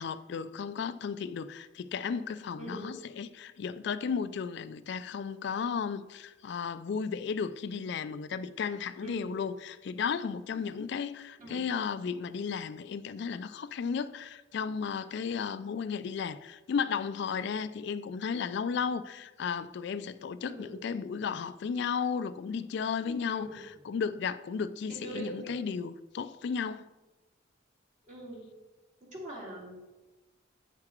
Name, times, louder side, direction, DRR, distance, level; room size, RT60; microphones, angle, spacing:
voice 1, 0.0-26.9, left 6 dB, 60° left, 0.3 m, -34 dB
voice 2, 2.5-2.9 9.0-9.3 11.4-11.6 20.4-20.7 23.3-23.6 24.9-25.5 28.0-28.4 29.0-29.8, right 1 dB, 40° right, 2.4 m, -43 dB
8.8 x 5.9 x 4.4 m
head